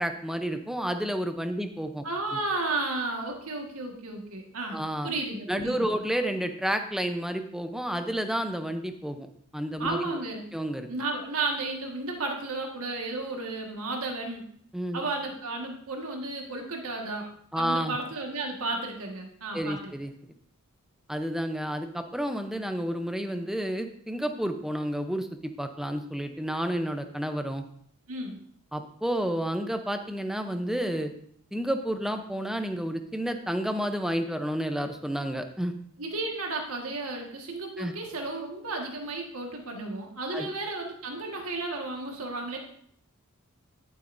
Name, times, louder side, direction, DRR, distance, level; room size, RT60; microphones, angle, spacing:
voice 1, 0.0-2.0 2.3-2.4 4.7-5.1 5.5-9.3 9.5-10.2 10.5-10.9 14.7-15.0 17.5-18.0 19.5-20.1 21.1-25.3 25.6-27.6 28.7-31.1 31.5-35.8 37.8-37.9 40.3-40.5, equal, ahead, 6 dB, 0.6 m, -30 dB
voice 2, 2.0-4.8 5.0-6.0 9.8-10.4 10.9-14.4 14.9-17.3 17.5-19.9 28.1-28.4 36.0-42.6, right 2 dB, 75° right, 1 dB, 1.7 m, -33 dB
11.5 x 8.0 x 2.6 m, 0.65 s
head